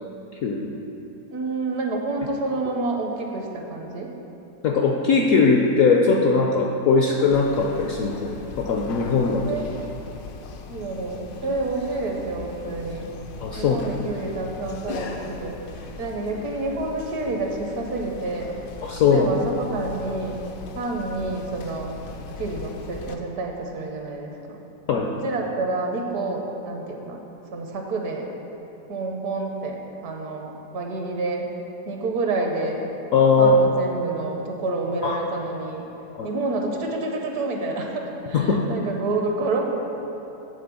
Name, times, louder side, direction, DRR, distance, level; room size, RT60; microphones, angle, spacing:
voice 1, 1.3-4.1 9.5-9.7 10.7-13.1 13.6-15.6 16.0-18.6 19.1-20.4 20.7-21.9 22.4-24.6 25.2-27.2 27.5-28.3 28.9-29.8 30.0-31.5 31.9-32.9 33.4-35.8 36.2-39.6, right 3 dB, 65° right, 1 dB, 1.2 m, -28 dB
voice 2, 4.6-9.6 13.4-13.8 18.8-19.3 24.9-25.2 33.1-33.5 35.0-35.2 36.1-36.3 38.3-38.6, left 4 dB, 70° left, 1 dB, 0.8 m, -20 dB
sound 1, 7.3-23.2, left 5 dB, 90° left, 1.3 m, -39 dB
8.6 x 4.0 x 6.9 m, 2.9 s
omnidirectional pair, 1.9 m